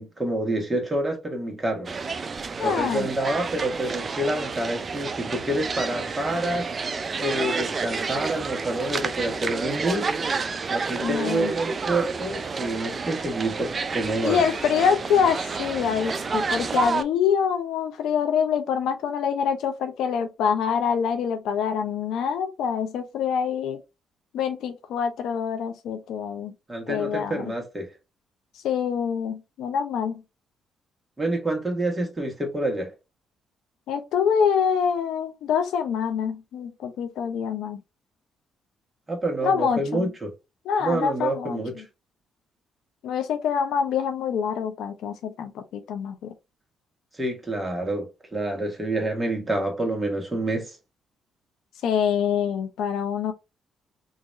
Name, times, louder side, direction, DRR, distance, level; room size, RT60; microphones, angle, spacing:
voice 1, 0.0-1.9 2.6-6.7 7.2-10.1 10.7-14.4 26.7-27.9 31.2-32.9 39.1-40.3 40.8-41.7 47.1-50.8, right 1 dB, 20° right, 1.7 m, -28 dB
sound 1, 1.8-17.0, right 4 dB, 40° right, 0.5 m, -30 dB
voice 2, 2.6-3.1 11.0-11.5 14.2-23.8 24.3-26.5 26.9-27.5 28.6-30.2 33.9-37.8 39.4-40.1 40.6-41.8 43.0-46.3 51.8-53.3, left 7 dB, 80° left, 0.7 m, -25 dB
4.0 x 3.0 x 2.5 m
cardioid pair, 90°, 0 cm